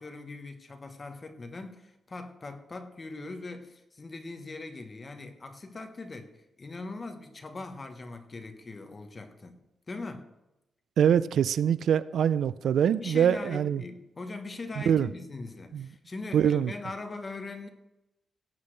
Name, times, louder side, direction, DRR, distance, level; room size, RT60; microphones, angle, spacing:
voice 1, 0.0-9.6 9.9-10.3 13.0-17.7, left 3 dB, 30° left, 6 dB, 1.2 m, -41 dB
voice 2, 11.0-13.8 14.9-15.1 15.7-15.8 16.3-16.7, right 8 dB, 80° right, 17 dB, 0.3 m, -24 dB
17.0 x 8.2 x 3.3 m, 0.94 s
cardioid pair, 115°, 0 cm